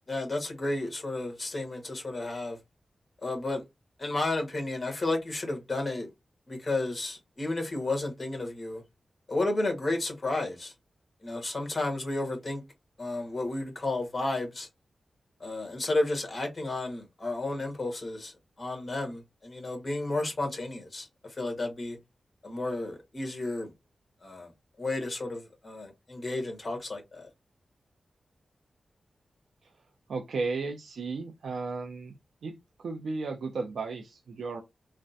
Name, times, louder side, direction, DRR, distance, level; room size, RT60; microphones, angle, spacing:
voice 1, 0.1-2.6 3.2-3.6 4.0-6.1 6.5-8.8 9.3-10.7 11.2-12.6 13.0-14.7 15.4-18.3 18.6-21.1 21.4-22.0 22.4-23.7 24.2-24.5 24.8-27.3, left 2 dB, 35° left, 1.3 m, -32 dB
voice 2, 30.1-32.1 32.4-34.6, right 4 dB, 90° right, 0.4 m, -34 dB
3.3 x 2.1 x 2.6 m
wide cardioid pair, 85°, 0 cm